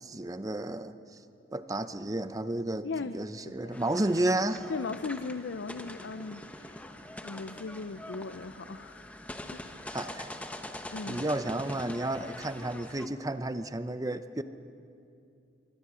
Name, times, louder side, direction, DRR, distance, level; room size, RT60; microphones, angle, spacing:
voice 1, 0.0-0.9 1.5-2.9 3.1-4.7 9.9-10.3 11.1-14.4, right 1 dB, 20° right, 11 dB, 0.7 m, -32 dB
voice 2, 2.8-3.1 3.4-3.8 4.7-6.9 7.2-9.1 9.5-9.7 10.9-11.2, left 4 dB, 70° left, 11 dB, 0.5 m, -38 dB
sound 1, 3.7-13.1, left 1 dB, 5° left, 1.0 m, -44 dB
25.5 x 23.5 x 6.3 m, 2.6 s
head